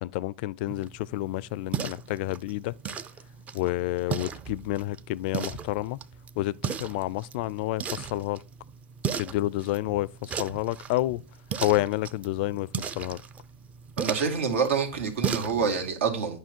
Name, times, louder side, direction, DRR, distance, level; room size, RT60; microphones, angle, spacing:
voice 1, 0.0-2.7 3.5-6.0 6.4-8.4 9.2-11.2 11.6-13.2, left 17 dB, 50° left, 0.3 m, -29 dB
sound 1, 0.7-15.9, right 7 dB, 20° right, 0.5 m, -36 dB
voice 2, 14.0-16.4, right 5 dB, 80° right, 2.4 m, -27 dB
9.5 x 5.6 x 4.4 m
hypercardioid pair, 135°, 6 cm